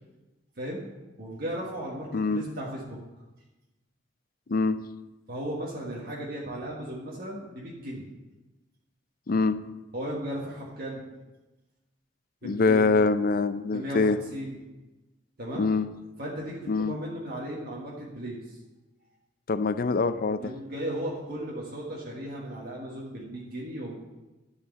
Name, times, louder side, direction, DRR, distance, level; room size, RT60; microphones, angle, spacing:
voice 1, 1.2-3.0 5.3-8.1 9.9-11.0 12.4-13.0 13.7-14.6 15.4-15.7 16.2-18.6 20.4-24.0, right 1 dB, 55° right, -4 dB, 1.6 m, -36 dB
voice 2, 9.3-9.6 12.4-14.2 15.6-15.9 16.7-16.9 19.5-20.5, left 4 dB, 50° left, 12 dB, 0.5 m, -24 dB
11.0 x 4.9 x 7.3 m, 1.1 s
head